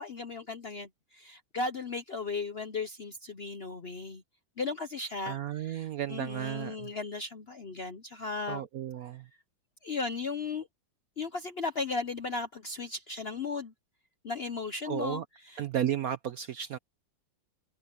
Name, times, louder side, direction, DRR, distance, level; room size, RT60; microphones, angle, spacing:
voice 1, 0.0-4.2 4.6-8.6 9.8-10.7 11.2-13.7 14.2-15.7, left 4 dB, 50° left, 0.7 m, -36 dB
voice 2, 5.3-6.9 8.5-9.2 14.9-15.2 15.6-16.8, right 10 dB, 65° right, 0.9 m, -33 dB
omnidirectional pair, 2.1 m